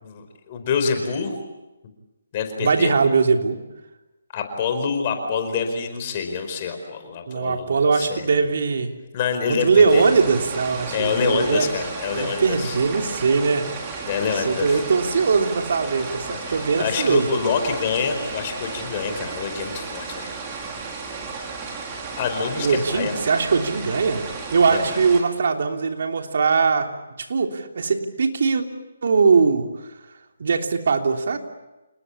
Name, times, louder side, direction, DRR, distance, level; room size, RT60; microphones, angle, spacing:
voice 1, 0.0-1.3 2.3-2.9 4.3-8.4 9.1-10.0 10.9-12.8 14.0-14.8 16.3-20.3 22.2-23.1 24.7-25.0, left 6 dB, 35° left, 6 dB, 4.9 m, -26 dB
voice 2, 2.6-3.6 7.3-8.9 9.5-11.7 12.1-13.7 13.9-14.1 14.3-17.3 22.6-26.9 27.3-28.6 29.0-29.9 30.4-31.4, right 5 dB, 60° right, 4 dB, 3.3 m, -21 dB
sound 1, 9.9-25.2, right 4 dB, 25° right, 5.0 m, -34 dB
29.0 x 20.0 x 8.6 m, 1.0 s
hypercardioid pair, 150°, 0 cm